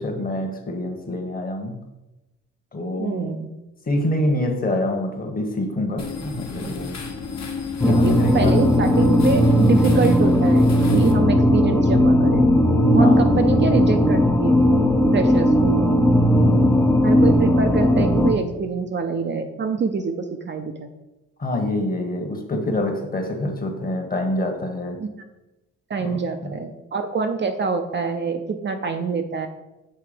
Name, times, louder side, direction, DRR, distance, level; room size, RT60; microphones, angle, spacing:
voice 1, 0.0-1.7 2.7-3.3 3.9-7.0 7.8-8.6 13.0-13.6 16.2-16.8 21.4-25.0 26.0-26.6, left 1 dB, 30° left, 4 dB, 1.2 m, -26 dB
voice 2, 3.0-3.5 7.9-12.5 12.9-14.6 15.1-15.8 17.0-20.1 20.4-20.9 25.0-25.1 25.9-29.5, right 5 dB, 40° right, 6 dB, 0.5 m, -25 dB
sound 1, 6.0-11.1, left 4 dB, 65° left, 1.4 m, -33 dB
sound 2, 7.8-18.3, left 1 dB, 10° left, 0.5 m, -17 dB
6.8 x 3.2 x 5.0 m, 1.0 s
cardioid pair, 90°, 30 cm